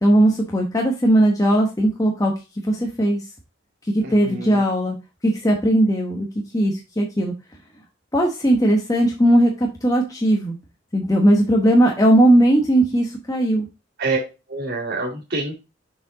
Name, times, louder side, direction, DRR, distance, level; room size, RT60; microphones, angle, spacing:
voice 1, 0.0-2.3 2.6-3.2 3.9-5.0 5.2-6.3 6.5-7.3 8.1-10.6 10.9-13.7, right 1 dB, 15° left, 0 dB, 0.9 m, -18 dB
voice 2, 4.0-4.6 14.0-14.2 14.5-15.5, right 3 dB, 50° right, -9 dB, 2.3 m, -26 dB
6.7 x 4.6 x 3.7 m, 0.27 s
head